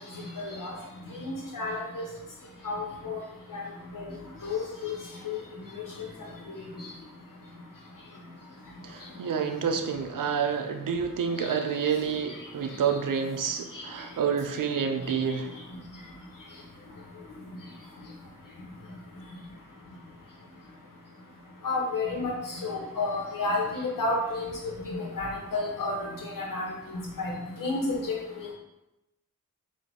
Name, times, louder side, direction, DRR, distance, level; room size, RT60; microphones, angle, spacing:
voice 1, 0.4-0.7 1.2-2.0 2.6-3.2 3.5-3.6 3.9-4.0 4.4-4.9 5.2-5.4 11.4-11.5 21.6-22.3 22.6-24.5 24.9-26.1 26.4-26.7 27.2-27.3 27.6-28.0, left 3 dB, 75° left, -2 dB, 1.3 m, -30 dB
voice 2, 8.8-15.5, right 6 dB, 75° right, 6 dB, 0.6 m, -28 dB
4.6 x 2.7 x 4.1 m, 0.92 s
wide cardioid pair, 110°, 33 cm